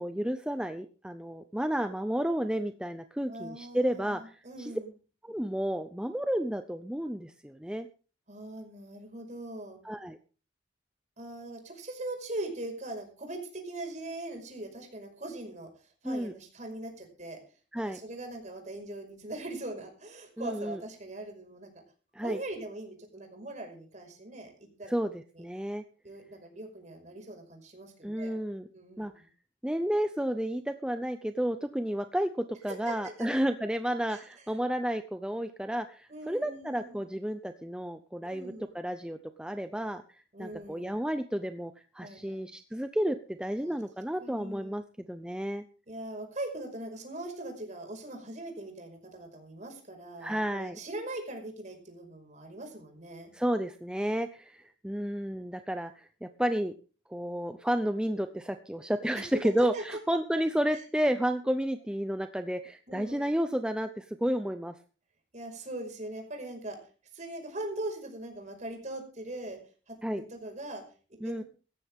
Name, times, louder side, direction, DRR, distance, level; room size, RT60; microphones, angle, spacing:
voice 1, 0.0-4.7 5.2-7.9 9.8-10.2 16.0-16.3 17.7-18.0 20.4-20.8 22.1-22.4 24.9-25.8 28.0-28.7 29.0-29.1 29.6-40.0 40.4-45.6 50.2-50.8 53.3-56.7 57.1-64.8 70.0-70.2 71.2-71.4, equal, 5° right, 8 dB, 0.6 m, -31 dB
voice 2, 3.3-4.9 8.3-9.8 11.2-17.4 17.9-21.7 22.2-24.9 25.3-25.4 26.0-28.4 28.7-29.3 32.9-33.3 34.1-34.4 36.1-37.0 38.2-38.7 40.3-41.0 42.0-42.5 43.6-43.8 44.2-44.7 45.9-53.3 59.6-59.8 60.7-60.8 62.9-63.3 65.3-66.8 67.1-69.6 69.9-70.8 71.1-71.4, right 1 dB, 40° right, 3 dB, 5.4 m, -41 dB
17.0 x 14.0 x 3.6 m, 0.37 s
head